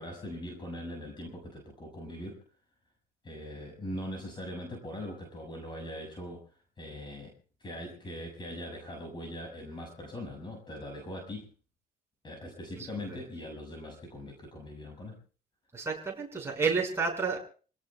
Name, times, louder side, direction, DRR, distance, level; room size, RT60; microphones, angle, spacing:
voice 1, 0.0-2.4 3.2-6.4 6.8-7.3 7.6-11.5 12.2-15.2, left 1 dB, 25° left, 1 dB, 5.9 m, -41 dB
voice 2, 15.7-17.4, right 4 dB, 15° right, -1 dB, 5.6 m, -30 dB
28.5 x 17.5 x 2.3 m, 0.39 s
cardioid pair, 110°, 17 cm